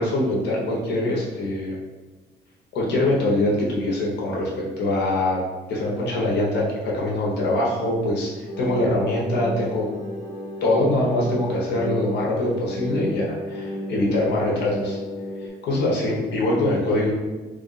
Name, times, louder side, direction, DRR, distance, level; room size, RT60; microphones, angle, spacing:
voice 1, 0.0-1.8 2.7-5.4 5.7-8.3 8.6-9.9 10.6-15.0 15.6-17.1, left 1 dB, 85° left, -3 dB, 1.0 m, -23 dB
sound 1, 8.5-15.5, left 1 dB, 35° left, 0.8 m, -32 dB
3.2 x 2.5 x 4.0 m, 1.3 s
cardioid pair, 145°, 17 cm